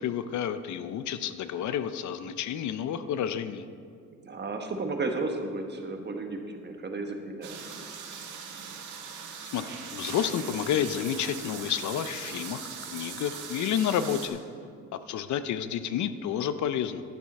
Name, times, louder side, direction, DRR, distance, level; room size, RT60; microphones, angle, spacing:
voice 1, 0.0-3.7 9.5-14.4 15.1-17.0, left 9 dB, 70° left, 12 dB, 0.6 m, -30 dB
voice 2, 4.2-7.7, right 3 dB, 35° right, 4 dB, 1.3 m, -33 dB
sound 1, 7.4-14.3, right 6 dB, 80° right, 1.5 m, -40 dB
12.0 x 8.7 x 4.2 m, 2.3 s
cardioid pair, 90°, 30 cm